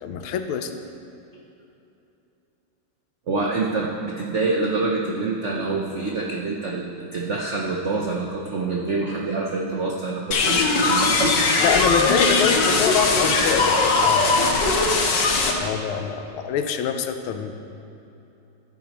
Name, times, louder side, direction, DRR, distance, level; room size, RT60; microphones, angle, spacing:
voice 1, 0.0-0.8 11.6-14.5 15.6-17.5, left 7 dB, 80° left, 8 dB, 1.5 m, -25 dB
voice 2, 3.3-11.4, right 3 dB, 75° right, -2 dB, 0.6 m, -26 dB
sound 1, 10.3-15.5, left 3 dB, 65° left, 1.4 m, -19 dB
14.5 x 8.3 x 3.0 m, 2.9 s
omnidirectional pair, 2.3 m